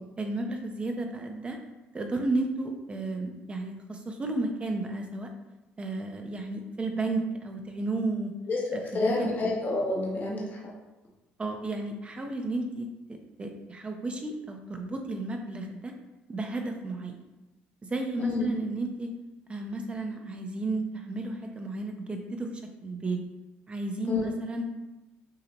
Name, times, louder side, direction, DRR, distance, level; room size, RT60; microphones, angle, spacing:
voice 1, 0.2-1.6 1.9-5.3 5.8-8.3 8.7-9.3 11.4-15.9 16.3-17.2 17.8-19.1 19.5-23.2 23.7-24.7, right 2 dB, 25° right, 4 dB, 0.7 m, -33 dB
voice 2, 8.5-10.6 18.2-18.5 24.1-24.3, left 2 dB, 45° left, -4 dB, 1.2 m, -29 dB
6.6 x 2.7 x 3.0 m, 1.1 s
supercardioid pair, 85°, 4 cm